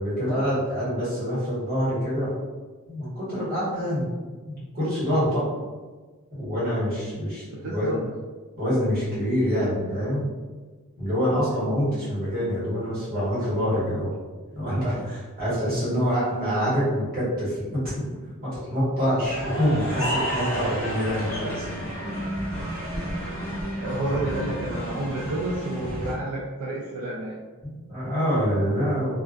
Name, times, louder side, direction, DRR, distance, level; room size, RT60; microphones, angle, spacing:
voice 1, 0.0-2.3 2.9-4.1 4.4-5.4 6.3-7.9 8.6-10.3 11.0-14.1 14.5-17.8 18.4-21.6 27.6-29.1, equal, 40° right, -10 dB, 1.3 m, -26 dB
voice 2, 7.5-8.1 23.8-27.4, right 1 dB, 75° right, -3 dB, 0.3 m, -30 dB
sound 1, 19.2-26.1, equal, 5° left, 0.9 m, -31 dB
2.4 x 2.2 x 2.4 m, 1.3 s
head